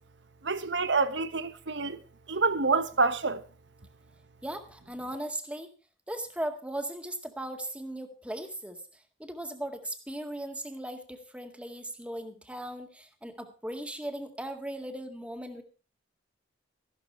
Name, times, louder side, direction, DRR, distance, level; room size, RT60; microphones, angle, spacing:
voice 1, 0.4-2.0 2.3-3.4, right 4 dB, 70° right, 1.2 m, -27 dB
voice 2, 4.4-5.7 6.1-8.8 9.2-15.6, right 1 dB, 5° right, 1.9 m, -38 dB
14.0 x 12.0 x 4.3 m
head